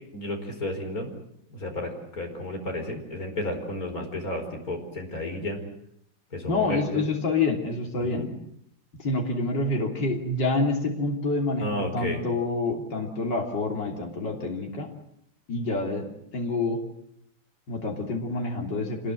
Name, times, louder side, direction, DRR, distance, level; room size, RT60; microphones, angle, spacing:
voice 1, 0.1-1.1 1.5-5.6 6.3-7.0 8.0-8.3 11.6-12.2, left 1 dB, 50° left, 3 dB, 5.3 m, -32 dB
voice 2, 6.5-8.3 8.9-14.9 15.5-16.8 17.7-19.1, left 3 dB, 75° left, 1 dB, 3.8 m, -27 dB
26.5 x 20.5 x 7.8 m, 0.73 s
omnidirectional pair, 2.0 m